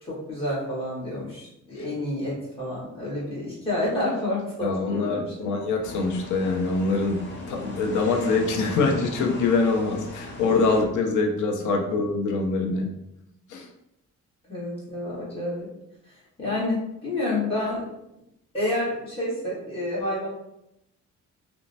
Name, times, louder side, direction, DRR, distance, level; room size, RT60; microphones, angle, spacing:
voice 1, 0.0-5.5 14.5-15.7 16.4-17.8 18.5-20.3, left 1 dB, 20° left, -9 dB, 1.4 m, -29 dB
voice 2, 4.6-7.2 7.5-12.9 13.5-13.7, left 3 dB, 75° left, 3 dB, 0.6 m, -24 dB
sound 1, 5.8-10.8, left 1 dB, 35° left, 0.7 m, -39 dB
3.0 x 2.1 x 2.6 m, 0.84 s
cardioid pair, 90°, 30 cm